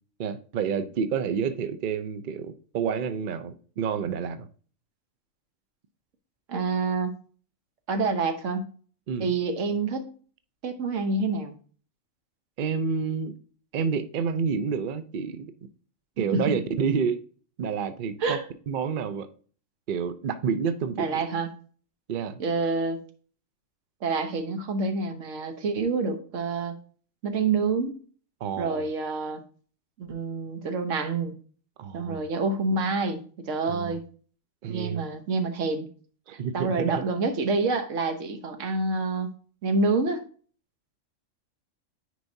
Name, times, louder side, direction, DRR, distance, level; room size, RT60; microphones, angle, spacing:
voice 1, 0.2-4.4 9.1-9.3 12.6-13.3 13.7-15.5 16.2-17.2 17.6-18.4 18.7-19.3 19.9-21.2 22.1-22.4 28.4-28.9 31.8-32.2 33.7-34.0 34.6-35.1 36.4-37.0, right 6 dB, 55° right, 0.6 m, -29 dB
voice 2, 6.5-7.1 7.9-8.7 9.2-10.1 10.6-11.6 16.3-16.5 18.2-18.4 21.0-21.5 22.4-23.0 24.0-26.8 27.2-28.0 28.6-29.4 30.0-31.3 31.9-34.0 34.7-35.9 36.3-39.3 39.6-40.2, right 3 dB, 70° right, 1.2 m, -27 dB
9.3 x 4.7 x 2.7 m
omnidirectional pair, 1.3 m